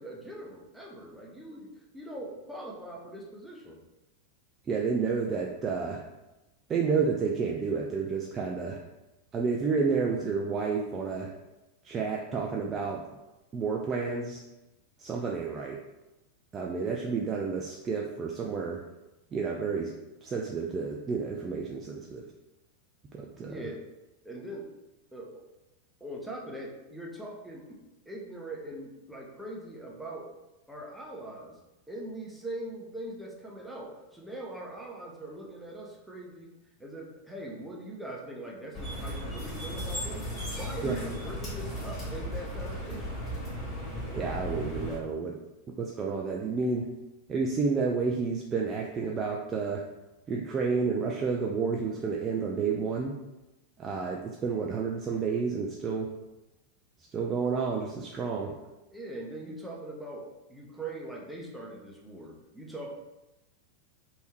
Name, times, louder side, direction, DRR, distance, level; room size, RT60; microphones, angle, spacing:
voice 1, 0.0-3.8 16.8-16.9 21.8-22.0 23.4-23.8 24.2-24.7 25.1-25.4 26.0-27.8 28.1-30.3 30.7-31.6 31.9-36.5 36.8-43.2 58.9-62.9, right 1 dB, ahead, -3 dB, 0.7 m, -41 dB
voice 2, 4.7-6.0 6.7-8.8 9.3-11.3 11.8-13.0 13.5-14.4 15.0-15.8 16.5-18.8 19.3-19.9 20.2-22.2 23.1-23.5 40.8-41.0 44.1-45.3 45.7-46.9 47.3-49.8 50.3-53.2 53.8-56.1 57.1-58.6, right 5 dB, 25° right, -1 dB, 0.3 m, -30 dB
sound 1, 38.7-45.0, equal, 25° left, 1.5 m, -36 dB
3.3 x 2.6 x 3.1 m, 0.99 s
figure-of-eight pair, 90°, 0 cm